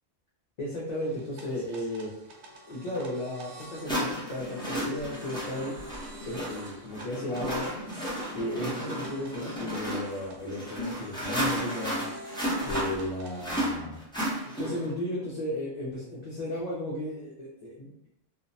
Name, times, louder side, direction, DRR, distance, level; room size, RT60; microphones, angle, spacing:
voice 1, 0.6-2.1 2.7-5.7 6.2-7.7 8.3-12.1 12.6-14.0 14.6-18.1, left 1 dB, 50° left, -6 dB, 0.5 m, -34 dB
sound 1, 0.9-13.4, right 1 dB, 80° right, 0.9 m, -49 dB
sound 2, 2.9-3.0 3.8-14.9, equal, 5° left, 0.6 m, -33 dB
2.6 x 2.1 x 2.6 m, 0.77 s
omnidirectional pair, 1.1 m